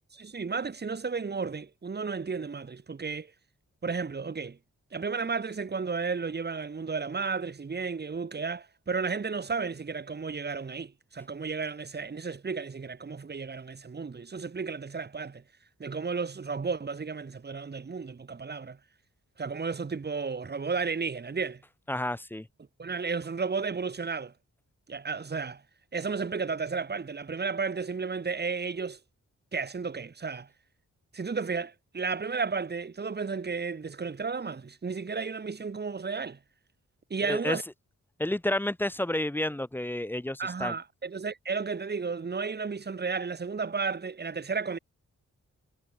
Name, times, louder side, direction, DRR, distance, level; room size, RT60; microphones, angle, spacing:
voice 1, 0.1-3.3 3.8-4.6 4.9-15.4 15.8-18.8 19.4-21.6 22.8-24.3 24.9-25.6 25.9-29.0 29.5-30.5 31.1-36.4 37.1-37.6 40.4-44.8, right 5 dB, 35° right, 1.2 m, -33 dB
voice 2, 21.9-22.5 37.3-37.6 38.2-40.7, left 1 dB, 5° left, 0.5 m, -30 dB
wide cardioid pair, 90°, 30 cm